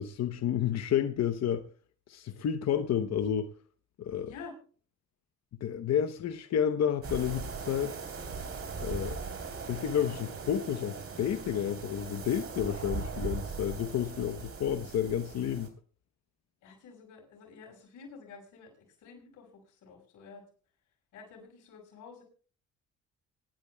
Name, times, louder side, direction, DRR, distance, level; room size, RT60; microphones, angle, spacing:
voice 1, 0.0-1.6 2.1-3.5 4.0-4.3 5.6-7.9 8.8-9.2 9.7-15.7, left 9 dB, 60° left, 0.9 m, -30 dB
sound 1, 7.0-15.7, right 5 dB, 50° right, 3.5 m, -39 dB
voice 2, 16.6-20.4 21.1-22.2, left 5 dB, 85° left, 5.6 m, -50 dB
25.5 x 11.5 x 2.3 m
cardioid pair, 90°, 30 cm